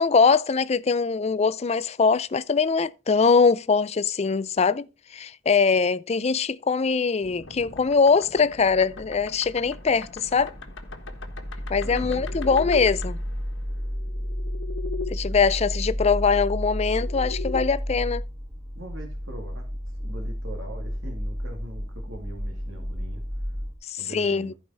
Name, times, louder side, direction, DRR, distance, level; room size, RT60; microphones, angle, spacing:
voice 1, 0.0-4.9 5.1-10.5 11.7-13.2 15.1-18.2 23.8-24.5, left 5 dB, 30° left, 0.4 m, -22 dB
sound 1, 7.2-15.1 16.4-17.7, left 5 dB, 60° left, 1.4 m, -40 dB
sound 2, 8.4-23.7, equal, 25° right, 2.6 m, -32 dB
voice 2, 11.8-12.3 15.2-15.5 17.9-18.0 18.7-19.7 20.0-23.2 24.0-24.5, right 1 dB, 65° right, 2.1 m, -42 dB
14.5 x 4.9 x 4.1 m
head